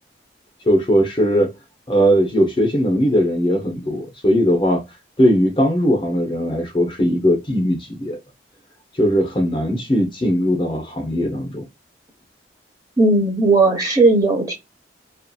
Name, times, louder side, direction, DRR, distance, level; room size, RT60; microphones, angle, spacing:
voice 1, 0.6-1.5 1.9-4.8 5.2-8.2 8.9-11.6, equal, 25° left, 0.6 m, -19 dB
voice 2, 13.0-14.5, right 2 dB, 20° right, 0.7 m, -16 dB
2.6 x 2.4 x 2.2 m
head